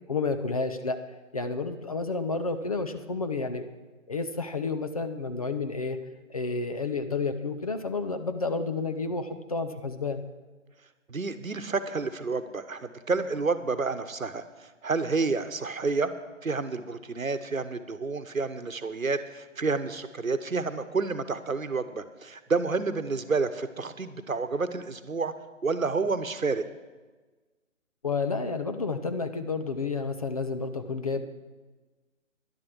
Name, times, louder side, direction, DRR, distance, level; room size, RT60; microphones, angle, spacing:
voice 1, 0.1-1.0 1.3-3.6 4.1-6.0 6.3-10.2 28.0-31.3, left 4 dB, 30° left, 8 dB, 0.6 m, -30 dB
voice 2, 11.1-16.1 16.4-25.3 25.6-26.6, right 4 dB, 90° right, 12 dB, 1.1 m, -29 dB
11.0 x 11.0 x 6.1 m, 1.3 s
figure-of-eight pair, 145°, 39 cm